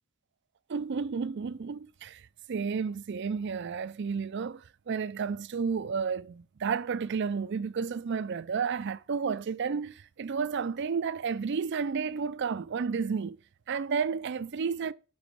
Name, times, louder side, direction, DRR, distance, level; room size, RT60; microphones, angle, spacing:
voice 1, 0.7-2.2 2.5-13.4 13.7-14.9, right 5 dB, 50° right, 0.4 m, -32 dB
7.0 x 5.1 x 4.7 m
head